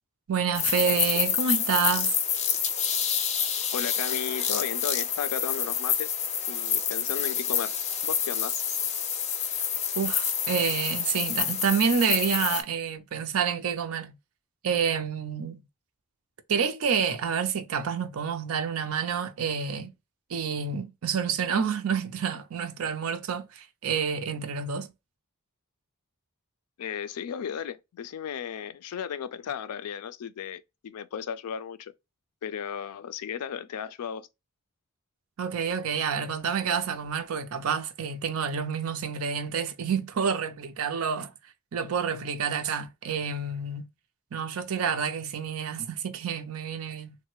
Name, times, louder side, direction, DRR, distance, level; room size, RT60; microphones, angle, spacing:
voice 1, 0.3-2.2 10.0-14.1 14.6-15.6 16.5-19.9 20.3-24.9 35.4-43.9 44.3-47.2, right 6 dB, 70° right, 0.5 m, -28 dB
sound 1, 0.5-12.6, left 8 dB, 30° left, 0.5 m, -28 dB
voice 2, 3.7-6.1 6.5-7.8 8.0-8.5 26.8-31.9 32.4-34.3, left 8 dB, 90° left, 0.4 m, -35 dB
3.2 x 2.1 x 2.9 m
head